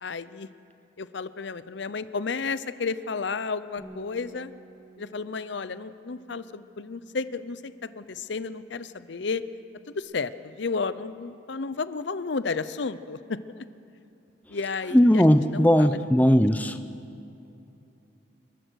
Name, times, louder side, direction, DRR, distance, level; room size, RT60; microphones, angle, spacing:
voice 1, 0.0-0.5 1.0-4.5 5.0-9.4 10.0-13.7 14.5-15.2 15.5-16.4, left 4 dB, 65° left, 14 dB, 0.6 m, -32 dB
Bass guitar, 3.8-10.0, right 2 dB, 25° right, 4.4 m, -54 dB
voice 2, 14.9-16.8, equal, 10° left, 9 dB, 0.5 m, -18 dB
28.0 x 15.0 x 6.3 m, 2.8 s
head